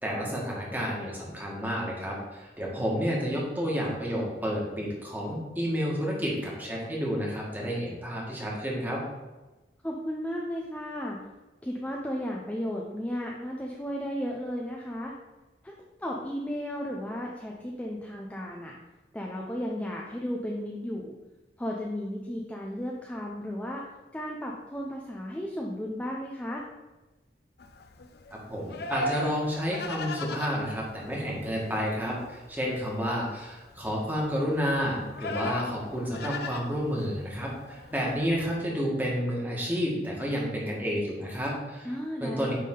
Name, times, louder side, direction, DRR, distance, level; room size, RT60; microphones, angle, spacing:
voice 1, 0.0-9.0 28.5-41.9 42.2-42.5, equal, 10° right, -3 dB, 1.6 m, -30 dB
voice 2, 9.8-11.2 11.6-15.1 15.6-15.7 16.0-18.7 19.1-21.1 21.6-23.8 24.1-26.6 41.8-42.5, equal, 10° left, -2 dB, 0.5 m, -34 dB
Livestock farm animals working animals, 27.6-38.6, left 2 dB, 60° left, 0.5 m, -39 dB
9.3 x 3.6 x 3.8 m, 1.2 s
head